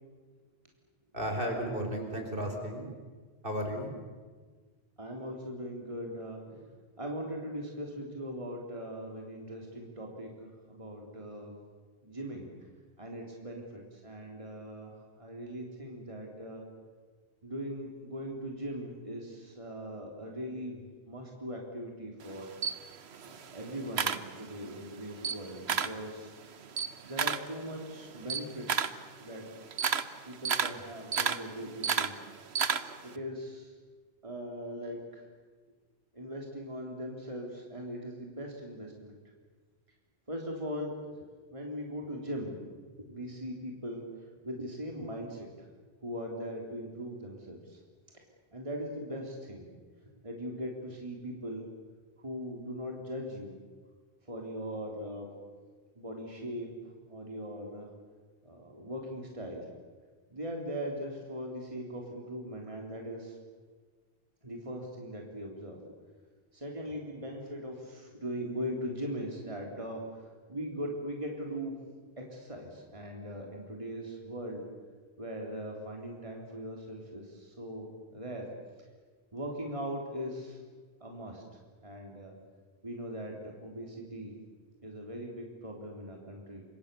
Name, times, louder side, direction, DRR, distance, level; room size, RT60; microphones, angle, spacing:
voice 1, 1.1-2.9 3.4-3.9, equal, 55° right, 3 dB, 4.7 m, -34 dB
voice 2, 5.0-6.7 7.0-11.6 12.0-12.5 13.0-16.6 17.4-22.5 23.2-26.3 26.7-26.8 27.1-29.5 30.3-32.1 33.0-33.7 34.2-35.3 36.1-39.2 40.3-41.2 41.5-42.6 43.0-45.7 46.0-47.8 48.5-49.7 50.2-51.7 52.2-53.6 54.2-55.3 56.0-57.9 58.4-59.7 60.3-63.4 64.4-65.8 66.5-71.8 72.2-74.6 75.2-78.5 79.3-80.6 81.0-81.4 81.8-82.3 82.8-84.3 84.8-86.6, equal, 30° right, 0 dB, 3.5 m, -40 dB
Camera, 22.2-24.8 25.1-26.0 26.4-33.1, right 6 dB, 75° right, 1.3 m, -32 dB
29.5 x 26.0 x 6.9 m, 1.5 s
omnidirectional pair, 1.1 m